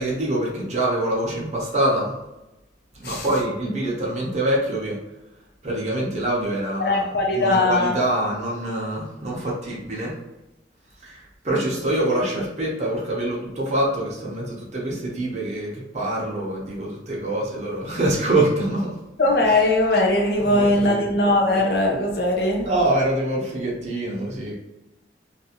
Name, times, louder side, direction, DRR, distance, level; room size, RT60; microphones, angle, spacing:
voice 1, 0.0-2.2 2.9-5.0 5.6-10.1 11.0-19.0 20.4-21.1 22.6-24.5, right 1 dB, 40° right, -4 dB, 0.7 m, -25 dB
voice 2, 6.8-8.0 19.2-22.7, left 2 dB, 60° left, -1 dB, 0.7 m, -20 dB
2.6 x 2.5 x 2.8 m, 0.97 s
head